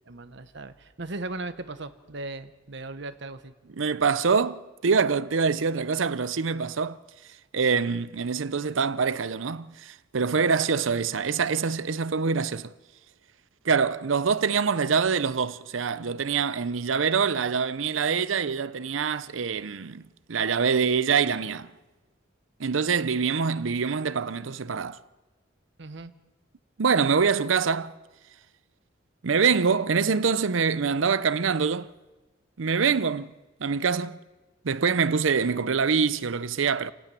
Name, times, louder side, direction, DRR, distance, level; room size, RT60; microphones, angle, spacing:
voice 1, 0.1-3.5 10.3-10.5 25.8-26.1, right 2 dB, 65° right, 1.2 m, -37 dB
voice 2, 3.8-7.0 7.5-12.7 13.6-20.0 20.3-21.7 22.6-25.0 26.8-27.9 29.2-31.9 32.6-33.3 33.6-34.2 34.6-36.9, right 5 dB, 80° right, 0.7 m, -25 dB
29.0 x 12.0 x 9.2 m
head